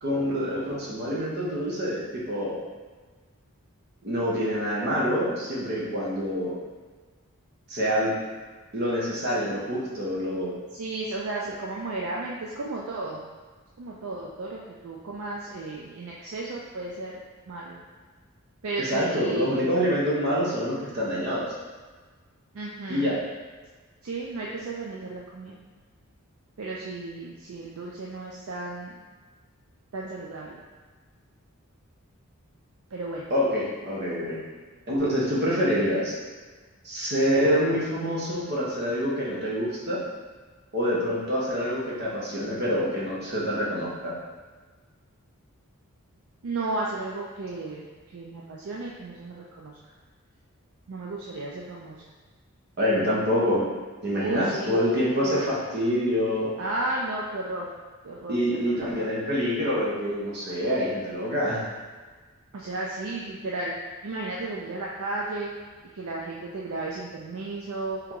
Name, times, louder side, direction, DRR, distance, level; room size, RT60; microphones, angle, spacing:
voice 1, 0.0-2.6 4.0-6.6 7.7-8.1 8.7-10.5 18.8-21.5 22.9-23.2 33.3-34.4 34.9-36.2 36.8-40.0 40.7-44.2 52.8-53.7 54.0-56.5 58.3-61.6, equal, 45° right, -5 dB, 0.9 m, -26 dB
voice 2, 10.7-13.2 13.8-17.2 17.5-17.8 18.6-19.7 22.5-23.2 24.0-25.6 26.6-29.0 29.9-30.6 32.9-33.3 46.4-49.8 50.9-52.0 54.1-54.8 55.2-55.5 56.6-57.7 58.0-58.8 62.5-63.7 64.0-65.5 65.9-68.0, right 2 dB, 65° right, -3 dB, 0.4 m, -34 dB
3.4 x 3.0 x 3.7 m, 1.4 s
head